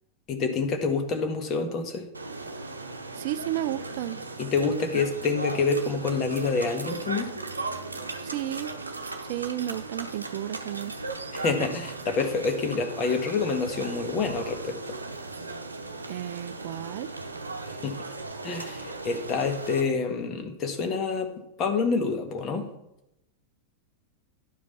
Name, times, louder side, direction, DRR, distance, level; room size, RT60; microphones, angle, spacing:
voice 1, 0.3-2.1 4.4-7.3 11.3-14.9 17.8-18.0 18.4-21.3 21.6-22.7, left 4 dB, 30° left, 5 dB, 1.5 m, -27 dB
sound 1, 2.1-19.8, right 3 dB, 80° right, 0.8 m, -37 dB
voice 2, 3.1-4.2 8.2-8.8 9.2-11.3 16.1-17.1, right 13 dB, 50° right, 14 dB, 0.4 m, -33 dB
11.0 x 5.1 x 5.5 m, 0.83 s
figure-of-eight pair, 90°, 0 cm